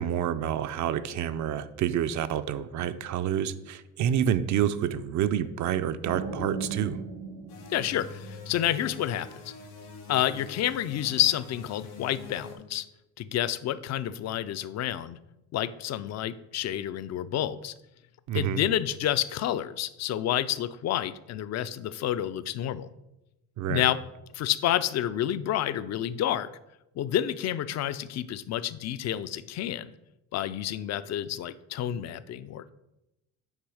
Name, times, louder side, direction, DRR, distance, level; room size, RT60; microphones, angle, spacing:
voice 1, 0.0-7.0 18.3-18.6 23.6-23.8, right 10 dB, 50° right, 13 dB, 0.5 m, -28 dB
sound 1, 6.0-8.8, right 4 dB, 85° right, 1.9 m, -37 dB
sound 2, 7.5-12.6, left 4 dB, 80° left, 2.4 m, -45 dB
voice 2, 7.7-9.3 10.1-12.8 13.2-15.2 15.5-17.7 18.3-22.9 23.7-24.0 24.3-26.5 27.0-29.9 30.3-32.7, left 11 dB, 45° left, 14 dB, 0.4 m, -29 dB
9.0 x 3.1 x 4.8 m, 0.91 s
supercardioid pair, 90°, 36 cm